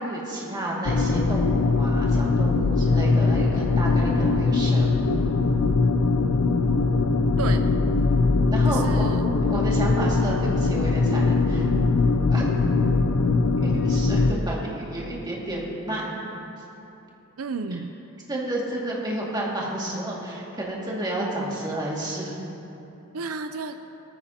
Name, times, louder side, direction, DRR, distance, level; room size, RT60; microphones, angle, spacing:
voice 1, 0.0-4.9 8.5-9.1 9.5-11.7 12.3-12.5 13.6-16.2 18.3-22.4, right 1 dB, 20° right, -4 dB, 2.2 m, -31 dB
sound 1, 0.9-14.4, left 3 dB, 90° left, 0.6 m, -21 dB
voice 2, 2.3-2.8 7.4-7.7 8.7-9.2 17.4-17.9 23.1-23.8, right 4 dB, 90° right, 8 dB, 0.5 m, -32 dB
18.0 x 14.0 x 2.9 m, 3.0 s
head